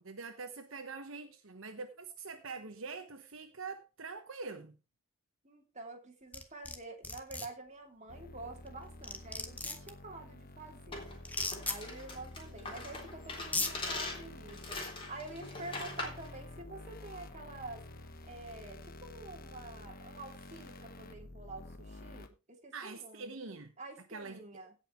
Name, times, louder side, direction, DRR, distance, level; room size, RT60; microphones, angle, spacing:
voice 1, 0.0-4.8 22.7-23.7 24.1-24.4, right 4 dB, 70° right, 1.2 m, -44 dB
voice 2, 5.4-11.2 11.7-14.8 15.1-17.8 18.3-23.4 23.8-24.7, right 2 dB, 35° right, 2.8 m, -48 dB
sound 1, 6.3-6.8 7.0-7.5 8.7-8.8 9.0-9.9 11.2-11.8 12.9-13.0 13.4-13.7, left 3 dB, 10° left, 1.1 m, -35 dB
sound 2, 8.1-22.3, left 1 dB, 45° left, 1.3 m, -50 dB
sound 3, 10.9-16.3, left 2 dB, 25° left, 3.5 m, -42 dB
16.5 x 5.7 x 4.4 m
head